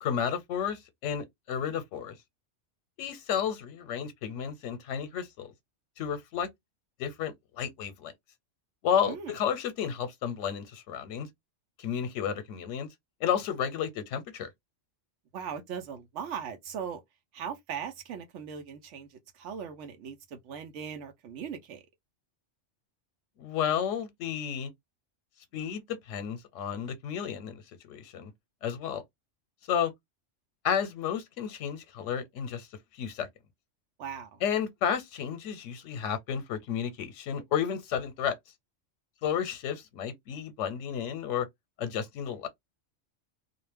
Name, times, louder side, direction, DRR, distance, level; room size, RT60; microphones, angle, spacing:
voice 1, 0.0-2.2 3.0-5.5 6.0-6.5 7.0-8.1 8.8-11.3 11.8-12.9 13.2-14.5 23.4-24.7 25.5-27.6 27.9-28.3 28.6-29.0 29.7-29.9 30.6-32.7 32.9-33.3 34.4-38.4 39.2-41.5 41.8-42.5, left 8 dB, 90° left, 0.9 m, -32 dB
voice 2, 15.3-17.0 17.3-19.1 19.3-21.8 34.0-34.4, right 7 dB, 80° right, 0.9 m, -39 dB
2.4 x 2.1 x 3.2 m
omnidirectional pair, 1.2 m